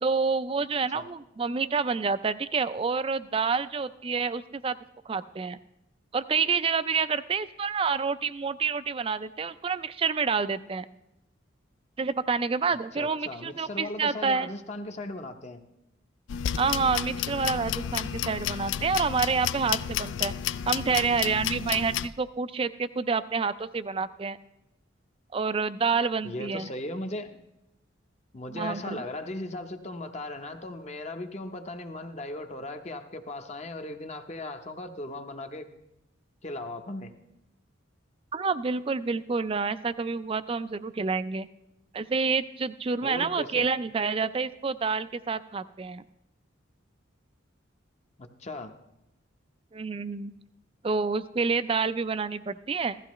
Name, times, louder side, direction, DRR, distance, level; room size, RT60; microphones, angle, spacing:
voice 1, 0.0-4.8 5.1-5.6 6.1-10.9 12.0-14.5 16.6-20.3 20.7-24.4 25.3-26.7 28.5-29.0 38.3-41.5 41.9-46.0 49.7-50.3 50.8-53.0, right 5 dB, 30° right, 14 dB, 0.3 m, -28 dB
voice 2, 12.9-15.6 26.2-27.4 28.3-35.7 36.4-37.1 43.0-43.7 48.2-48.7, left 1 dB, 35° left, 6 dB, 0.8 m, -37 dB
Toaster oven timer and ding, 16.3-22.1, left 9 dB, 70° left, 0.3 m, -31 dB
15.5 x 13.5 x 3.1 m, 0.89 s
head